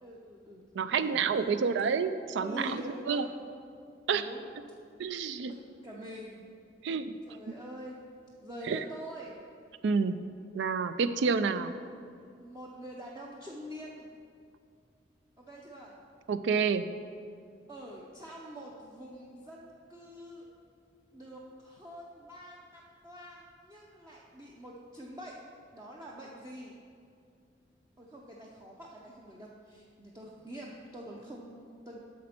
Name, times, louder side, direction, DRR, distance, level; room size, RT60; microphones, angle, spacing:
voice 1, 0.0-0.6 0.9-1.5 2.4-3.3 4.1-4.4 5.5-6.4 7.3-8.0 8.4-9.4 12.4-14.1 15.4-15.9 17.7-20.5 21.1-25.4 25.7-26.8 28.0-32.0, equal, 20° right, -4 dB, 0.6 m, -45 dB
voice 2, 0.7-2.8 3.1-3.3 4.1-4.2 5.0-5.5 6.8-7.2 8.7-8.8 9.8-10.2 10.5-11.7 16.3-16.8, right 5 dB, 70° right, 12 dB, 0.4 m, -28 dB
8.3 x 6.3 x 4.3 m, 2.3 s
head